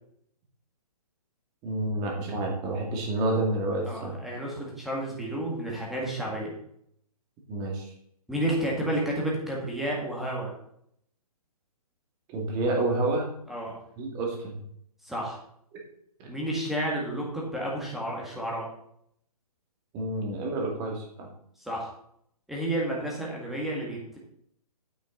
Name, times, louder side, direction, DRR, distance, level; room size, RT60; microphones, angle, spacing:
voice 1, 1.6-4.2 7.5-7.9 12.3-13.3 14.0-14.6 15.7-15.8 16.2-16.3 19.9-21.3, right 2 dB, 20° right, 0 dB, 2.3 m, -29 dB
voice 2, 3.9-6.5 8.3-10.5 13.5-13.7 15.0-15.4 16.3-18.7 21.6-21.9 22.5-24.2, right 1 dB, ahead, -3 dB, 1.9 m, -31 dB
9.1 x 8.7 x 3.9 m, 0.69 s
hypercardioid pair, 155°, 20 cm